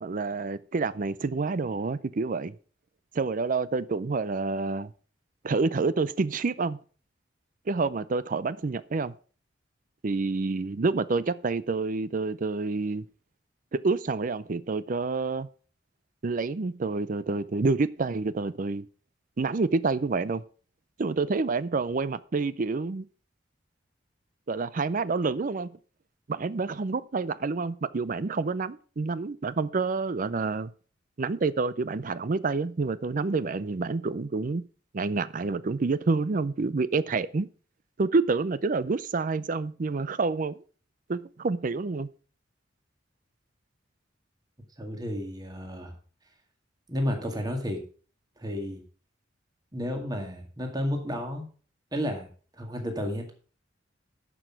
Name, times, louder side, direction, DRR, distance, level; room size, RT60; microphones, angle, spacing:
voice 1, 0.0-2.5 3.1-4.9 5.4-6.8 7.7-9.1 10.0-13.0 13.8-15.5 16.2-18.9 19.4-20.4 21.0-23.1 24.5-25.7 26.3-30.7 31.2-34.6 34.9-37.5 38.0-40.6 41.1-42.1, right 3 dB, 45° right, 0.5 m, -28 dB
voice 2, 44.8-45.9 46.9-47.8 48.4-48.8 49.7-51.5 51.9-52.3 52.6-53.3, equal, 20° right, 2.0 m, -32 dB
11.5 x 6.2 x 5.8 m
head